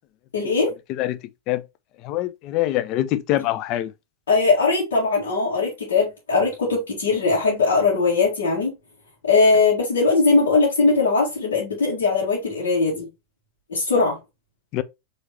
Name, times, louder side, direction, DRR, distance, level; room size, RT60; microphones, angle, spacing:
voice 1, 0.3-0.7 4.3-8.7 9.2-13.1 13.7-14.2, left 3 dB, 65° left, 1.8 m, -20 dB
voice 2, 2.0-3.9 14.7-14.8, left 14 dB, 40° left, 0.4 m, -24 dB
4.6 x 3.2 x 2.9 m
figure-of-eight pair, 90°, 0 cm